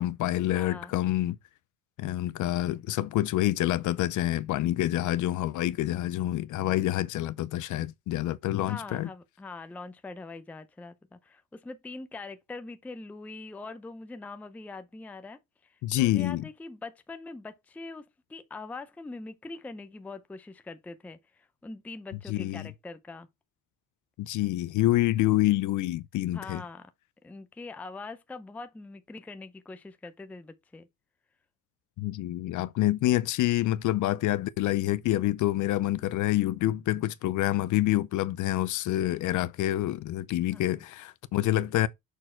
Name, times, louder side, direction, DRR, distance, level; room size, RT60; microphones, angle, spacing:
voice 1, 0.0-1.4 2.0-9.1 15.8-16.5 22.3-22.7 24.2-26.6 32.0-41.9, left 15 dB, 60° left, 0.5 m, -27 dB
voice 2, 0.5-0.9 8.7-15.4 15.7-21.2 21.6-23.3 26.3-26.9 27.2-30.9 40.5-40.8, left 3 dB, 5° left, 0.4 m, -43 dB
6.4 x 4.4 x 4.3 m
cardioid pair, 155°, 34 cm